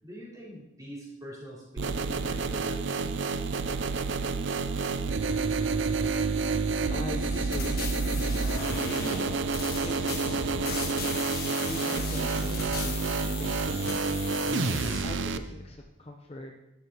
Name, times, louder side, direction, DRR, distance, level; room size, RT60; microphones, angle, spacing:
voice 1, 0.0-3.1, equal, 15° right, -7 dB, 4.1 m, -44 dB
sound 1, 1.8-15.4, right 4 dB, 60° right, 0.5 m, -29 dB
voice 2, 6.9-9.1 9.8-11.3 11.7-14.4 15.0-16.5, left 1 dB, 30° left, 2 dB, 0.7 m, -43 dB
sound 2, 7.1-15.0, left 4 dB, 45° left, 1.5 m, -37 dB
12.5 x 12.0 x 3.0 m, 0.95 s
head